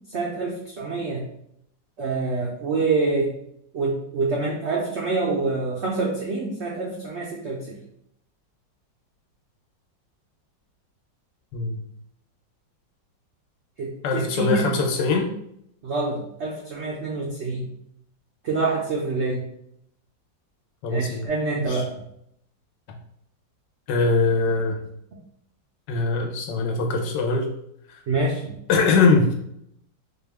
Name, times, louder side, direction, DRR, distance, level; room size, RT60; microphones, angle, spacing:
voice 1, 0.1-1.2 2.0-3.3 3.7-7.8 13.8-14.7 15.8-17.7 18.4-19.4 20.9-21.9 28.1-28.6, right 3 dB, 80° right, -2 dB, 0.6 m, -26 dB
voice 2, 14.0-15.3 20.8-21.3 21.7-21.8 23.9-24.8 25.9-27.5 28.7-29.3, left 3 dB, 80° left, 2 dB, 1.3 m, -22 dB
4.5 x 2.3 x 3.3 m, 0.74 s
omnidirectional pair, 2.0 m